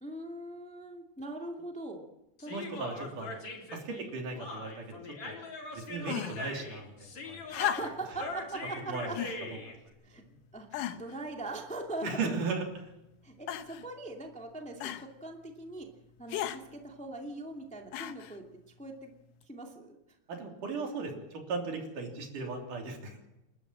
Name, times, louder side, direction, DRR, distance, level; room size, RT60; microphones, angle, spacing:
voice 1, 0.0-2.1 2.4-2.5 3.9-4.1 7.6-9.2 10.0-10.2 10.5-12.3 13.2-15.9 16.2-18.4 18.8-19.1 19.5-20.0, right 2 dB, 5° left, 2 dB, 1.9 m, -41 dB
Human voice, 2.4-9.8, left 2 dB, 60° left, 4.7 m, -41 dB
voice 2, 2.5-3.4 3.7-5.4 5.9-7.4 8.9-9.1 9.5-9.6 12.0-12.9 20.3-23.2, right 4 dB, 80° right, 2 dB, 4.9 m, -37 dB
sound 1, 6.0-6.5 7.5-8.2 9.1-9.4 10.2-10.3 10.7-11.2 12.0-12.6 13.5-13.9 14.8-15.1 16.3-16.6 17.9-18.4 19.4-19.5, left 12 dB, 80° left, 2.5 m, -36 dB
29.0 x 12.5 x 7.6 m, 0.93 s
omnidirectional pair, 3.6 m